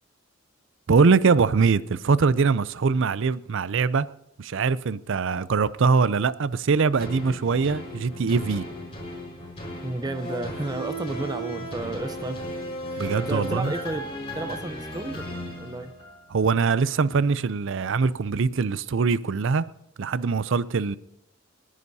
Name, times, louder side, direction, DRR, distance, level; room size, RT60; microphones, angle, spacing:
voice 1, 0.9-4.1 4.4-8.7 13.0-13.7 16.3-19.7 20.0-21.0, right 5 dB, 65° right, 0.5 m, -22 dB
sound 1, 7.0-16.4 16.9-17.0, equal, 30° left, 4.9 m, -36 dB
voice 2, 9.8-12.6 12.9-15.9, right 2 dB, 20° right, 0.6 m, -32 dB
30.0 x 10.0 x 2.8 m
head